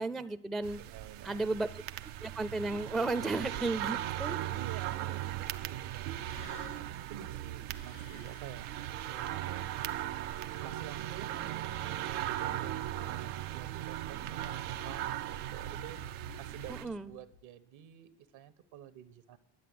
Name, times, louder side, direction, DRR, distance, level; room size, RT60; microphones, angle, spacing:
voice 1, 0.0-0.8 1.2-1.7 2.2-4.4 16.8-17.1, right 3 dB, ahead, 11 dB, 0.4 m, -33 dB
sound 1, 0.6-16.9, right 13 dB, 90° right, 0.7 m, -38 dB
voice 2, 0.8-1.5 4.6-8.7 8.9-9.6 10.6-19.4, right 11 dB, 70° right, 11 dB, 1.2 m, -50 dB
sound 2, 6.1-17.5, left 7 dB, 85° left, 2.3 m, -57 dB
11.0 x 7.9 x 7.7 m, 0.75 s
cardioid pair, 90°, 49 cm